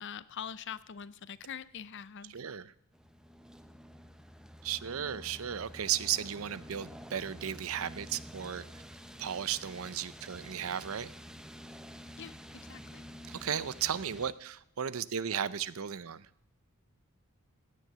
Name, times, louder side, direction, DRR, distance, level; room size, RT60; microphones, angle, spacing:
voice 1, 0.0-2.3 12.2-13.0, left 8 dB, 55° left, 17 dB, 0.6 m, -44 dB
voice 2, 2.3-2.7 4.6-8.7 9.2-11.1 13.3-16.3, right 9 dB, 75° right, 18 dB, 0.6 m, -35 dB
sound 1, 2.9-14.3, equal, 5° right, 0.6 m, -49 dB
16.5 x 9.3 x 6.8 m, 0.71 s
head